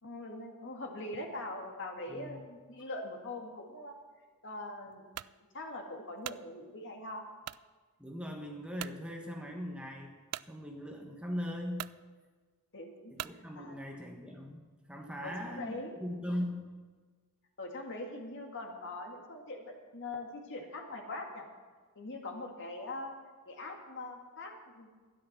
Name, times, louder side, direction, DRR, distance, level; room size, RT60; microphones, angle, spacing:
voice 1, 0.0-3.9 4.4-5.1 5.5-7.2 12.7-13.8 15.2-15.9 17.6-21.5 22.0-23.1 23.5-24.9, left 2 dB, 60° left, 2 dB, 2.0 m, -42 dB
voice 2, 2.1-2.4 8.0-10.2 10.5-11.9 13.1-14.6 14.9-16.7, equal, 5° right, 1 dB, 1.3 m, -39 dB
sound 1, 5.1-5.4 5.9-6.5 7.4-7.7 8.2-8.3 8.8-9.0 10.3-10.5 11.3-11.4 11.7-12.0 13.2-13.4, right 13 dB, 90° right, 0.3 m, -41 dB
12.5 x 10.5 x 5.9 m, 1.4 s
head